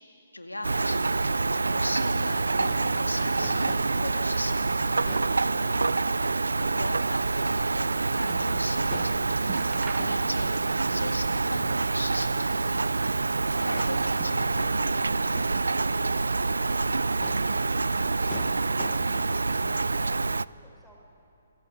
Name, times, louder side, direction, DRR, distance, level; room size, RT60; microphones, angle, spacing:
voice 1, 0.3-3.7 4.0-5.8 6.5-9.5 10.0-13.1 13.6-15.4, left 1 dB, 90° left, 6 dB, 2.0 m, -39 dB
Rain, 0.6-20.5, right 3 dB, 75° right, 0.5 m, -26 dB
Crowd / Fireworks, 2.5-19.8, left 9 dB, 20° left, 0.9 m, -50 dB
voice 2, 6.1-6.2, right 1 dB, ahead, -2 dB, 5.0 m, -56 dB
sound 1, 8.2-8.7 9.0-9.1 9.4-10.7 11.0-11.9 12.3-13.2 13.8-14.8 15.3-16.0 16.3-17.1 17.7-17.8, right 8 dB, 25° right, 1.6 m, -46 dB
27.5 x 18.0 x 8.7 m, 2.9 s
figure-of-eight pair, 130°, 0 cm